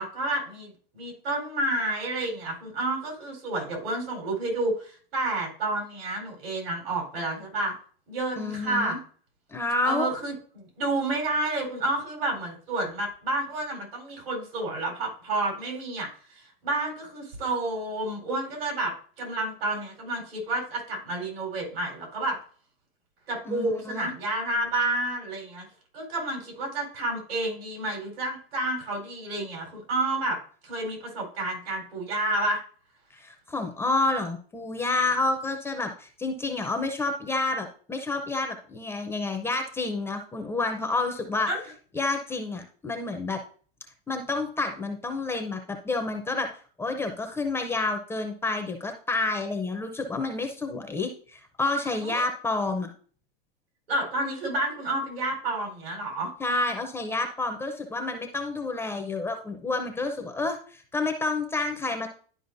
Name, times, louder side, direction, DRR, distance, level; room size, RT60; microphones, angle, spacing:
voice 1, 0.0-7.8 8.1-9.0 9.8-22.4 23.3-25.7 25.9-32.6 41.5-41.6 52.0-52.3 53.9-56.3, right 2 dB, 80° right, 0 dB, 3.9 m, -30 dB
voice 2, 8.4-9.0 9.5-10.1 23.5-24.1 33.1-41.5 41.9-43.4 44.1-46.5 46.8-52.9 56.4-62.1, left 3 dB, 10° left, 4 dB, 0.5 m, -29 dB
11.5 x 5.0 x 2.6 m, 0.43 s
supercardioid pair, 145°, 29 cm